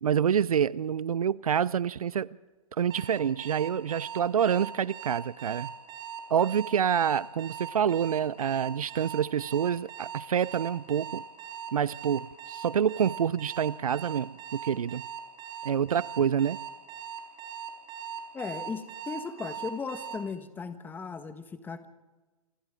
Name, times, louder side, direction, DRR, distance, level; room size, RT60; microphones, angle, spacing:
voice 1, 0.0-2.4 2.8-5.7 6.3-11.2 11.7-15.1 15.6-16.6, right 8 dB, 75° right, 0.6 m, -27 dB
Alarm, 2.9-20.2, right 8 dB, 25° right, 4.8 m, -40 dB
voice 2, 18.3-21.9, left 5 dB, 10° left, 1.4 m, -37 dB
28.5 x 25.0 x 3.8 m
hypercardioid pair, 130°, 19 cm